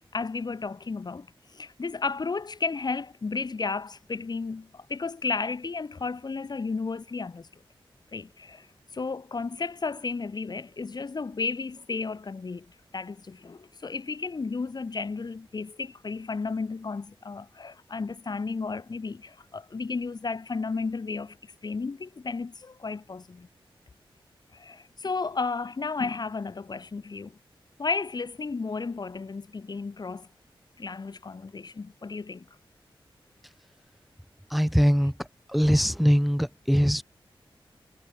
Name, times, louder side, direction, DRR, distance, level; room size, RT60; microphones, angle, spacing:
voice 1, 0.1-7.5 8.1-12.7 12.9-23.5 24.5-27.4 27.8-30.3 30.8-32.4, left 4 dB, 50° left, 5.0 m, -33 dB
voice 2, 34.5-37.0, equal, ahead, 2.3 m, -22 dB
wide cardioid pair, 110°, 9 cm